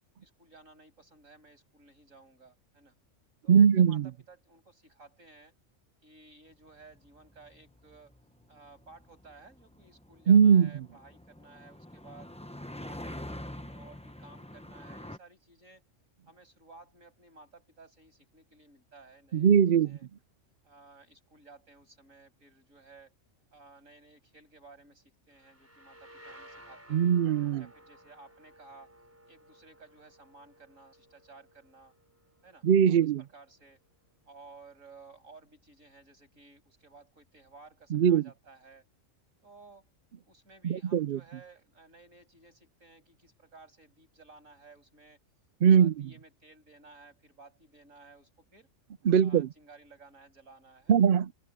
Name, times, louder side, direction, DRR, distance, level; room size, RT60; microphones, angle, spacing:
voice 1, 0.2-3.0 3.4-5.5 6.0-8.2 8.5-12.4 12.8-15.8 16.3-20.1 20.6-23.1 23.5-27.1 27.6-28.9 29.3-31.9 32.4-32.7 33.0-33.8 34.3-38.9 39.4-39.9 40.2-45.2 45.7-48.7 49.2-51.0, right 3 dB, 80° right, 7.6 m, -56 dB
voice 2, 3.5-4.1 10.3-10.7 19.3-20.0 26.9-27.6 32.6-33.2 37.9-38.2 40.6-41.2 45.6-46.1 49.1-49.5 50.9-51.3, right 7 dB, 55° right, 0.6 m, -21 dB
sound 1, 6.7-15.2, left 1 dB, 5° left, 0.8 m, -46 dB
sound 2, 25.3-32.9, right 1 dB, 10° right, 5.0 m, -56 dB
omnidirectional pair, 1.3 m